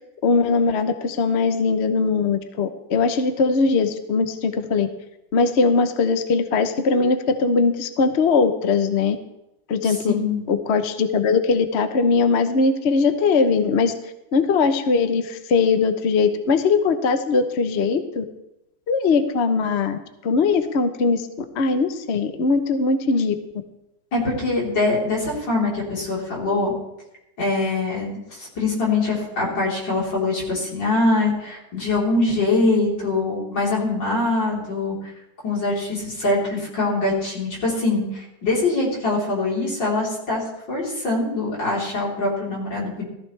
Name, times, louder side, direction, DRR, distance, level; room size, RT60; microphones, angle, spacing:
voice 1, 0.2-4.9 5.3-9.2 9.7-10.2 10.5-13.9 14.3-18.2 18.9-21.3 21.5-23.3, left 4 dB, 50° left, 8 dB, 0.9 m, -20 dB
voice 2, 9.8-10.4 24.1-26.7 27.4-35.0 35.4-43.1, left 2 dB, 80° left, -4 dB, 4.6 m, -23 dB
17.5 x 14.0 x 3.3 m, 0.89 s
omnidirectional pair, 2.0 m